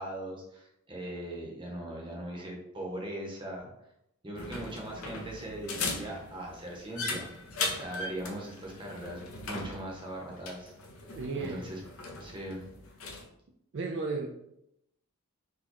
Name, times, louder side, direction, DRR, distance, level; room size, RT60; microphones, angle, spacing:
voice 1, 0.0-3.7 4.2-7.3 7.7-10.7 11.1-11.8 12.2-12.6, right 1 dB, 20° right, -1 dB, 0.8 m, -40 dB
sound 1, 4.4-13.2, left 3 dB, 65° left, 0.6 m, -39 dB
voice 2, 11.1-11.7 13.7-14.3, right 4 dB, 55° right, 1 dB, 0.4 m, -33 dB
4.2 x 2.2 x 2.9 m, 0.80 s
head